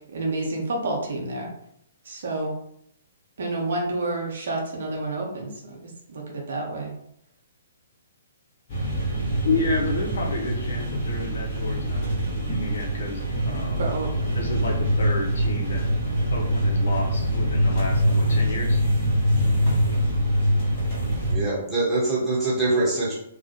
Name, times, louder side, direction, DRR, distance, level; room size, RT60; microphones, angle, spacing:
voice 1, 0.1-1.5 2.0-2.5 3.4-5.8 6.1-6.9 13.4-14.4, right 2 dB, 55° right, -1 dB, 0.6 m, -29 dB
sound 1, 8.7-21.3, equal, 35° left, 0.9 m, -24 dB
voice 2, 9.4-12.0 12.3-13.9 14.3-15.9 16.3-18.8, left 3 dB, 60° left, 0 dB, 0.6 m, -30 dB
voice 3, 21.3-23.1, right 2 dB, ahead, -9 dB, 1.1 m, -23 dB
2.4 x 2.0 x 2.8 m, 0.73 s
figure-of-eight pair, 125°, 0 cm